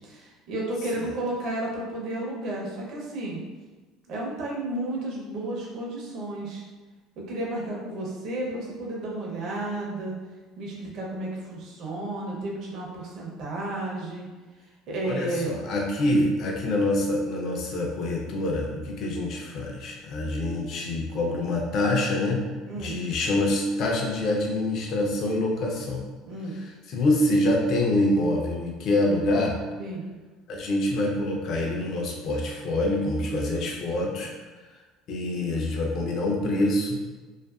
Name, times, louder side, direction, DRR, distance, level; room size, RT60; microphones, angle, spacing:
voice 1, 0.0-3.4 4.1-6.6 7.2-10.1 10.6-14.3 14.9-15.6 22.7-23.0 26.2-26.6 29.8-30.1, right 1 dB, 55° right, -3 dB, 0.6 m, -32 dB
voice 2, 15.0-22.4 22.8-26.0 26.5-29.5 30.5-34.3 35.1-37.2, left 1 dB, 50° left, 0 dB, 0.5 m, -26 dB
2.6 x 2.5 x 2.3 m, 1.3 s
cardioid pair, 125°, 0 cm